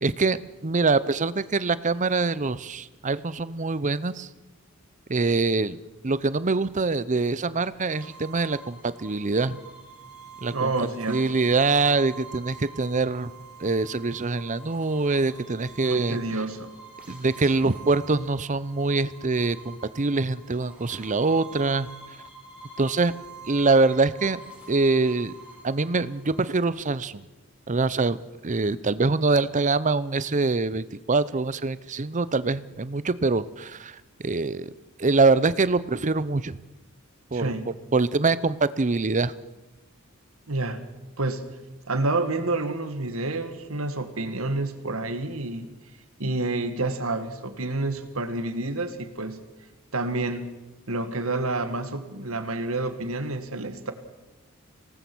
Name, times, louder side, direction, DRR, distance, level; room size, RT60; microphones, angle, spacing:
voice 1, 0.0-4.3 5.1-5.8 6.0-9.6 10.4-13.3 13.6-16.2 17.1-21.9 22.8-23.1 23.5-24.4 24.7-25.3 25.6-27.2 27.7-28.2 28.4-34.7 35.0-36.6 37.3-37.5 37.9-39.3, right 3 dB, 35° right, 16 dB, 0.7 m, -24 dB
sound 1, 7.9-26.4, right 4 dB, 5° right, 7.1 m, -46 dB
voice 2, 10.5-11.3 15.8-16.7 17.6-17.7 37.3-37.7 40.5-40.8 41.2-41.4 41.9-45.7 46.2-49.4 49.9-50.6 50.9-53.9, right 2 dB, 75° right, 9 dB, 2.0 m, -29 dB
25.5 x 18.5 x 6.2 m, 1.1 s
head